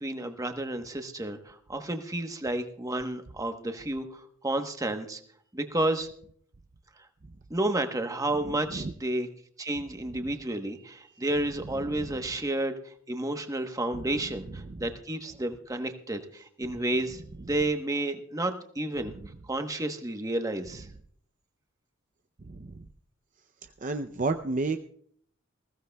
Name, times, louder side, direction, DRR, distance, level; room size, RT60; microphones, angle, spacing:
voice 1, 0.0-5.2 5.5-6.1 7.5-9.3 9.6-12.7 13.1-19.2 19.5-20.9, right 1 dB, 15° right, 6 dB, 1.0 m, -31 dB
voice 2, 22.5-22.8 23.8-24.8, right 3 dB, 40° right, 8 dB, 0.5 m, -31 dB
20.5 x 16.0 x 2.3 m, 0.62 s
head